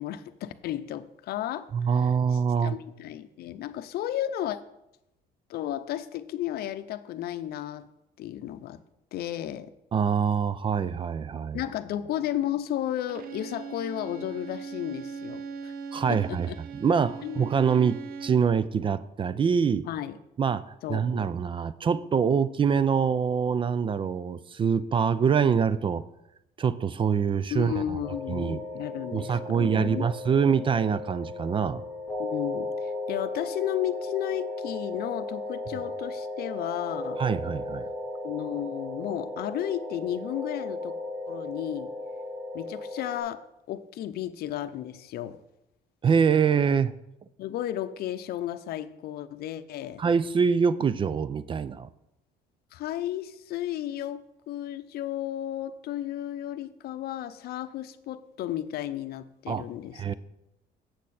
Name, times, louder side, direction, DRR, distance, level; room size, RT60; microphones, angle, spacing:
voice 1, 0.0-4.6 5.5-7.9 8.2-8.8 9.1-9.7 11.5-15.7 16.1-16.6 17.2-17.5 19.9-20.2 20.8-21.3 27.5-30.1 32.2-37.2 38.2-41.0 41.3-41.9 42.5-43.4 43.7-45.4 47.4-50.0 52.7-60.1, left 12 dB, 70° left, 12 dB, 0.6 m, -33 dB
voice 2, 1.7-2.8 9.9-11.6 15.9-16.5 16.8-19.8 20.4-26.0 26.6-28.0 28.3-28.6 29.1-31.8 37.2-37.9 46.0-46.9 50.0-51.9 59.5-59.6 60.0-60.1, right 6 dB, 30° right, 16 dB, 0.4 m, -25 dB
Bowed string instrument, 13.1-18.5, right 5 dB, 60° right, 0.7 m, -40 dB
sound 1, 28.0-43.2, left 2 dB, 5° right, 3.3 m, -36 dB
8.3 x 7.8 x 4.2 m, 0.84 s
cardioid pair, 110°, 17 cm